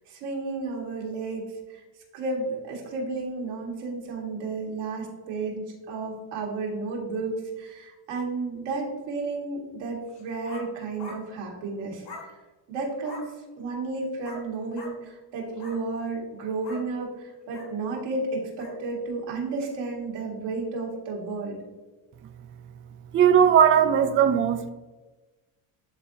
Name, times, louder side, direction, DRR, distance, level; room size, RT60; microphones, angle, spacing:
voice 1, 0.1-1.4 1.7-1.8 2.1-12.1 12.7-13.2 13.6-21.6, right 3 dB, 85° right, -2 dB, 2.0 m, -32 dB
sound 1, 10.1-10.7 11.0-11.2 12.0-12.3 13.0-13.3 14.2-14.5 14.7-15.0 15.5-15.8 16.6-16.9 17.5-17.7 18.6-18.8, left 2 dB, 50° left, 2.0 m, -42 dB
voice 2, 23.1-24.7, right 8 dB, 30° right, 9 dB, 0.4 m, -18 dB
11.0 x 3.7 x 2.7 m, 1.2 s
cardioid pair, 90°, 49 cm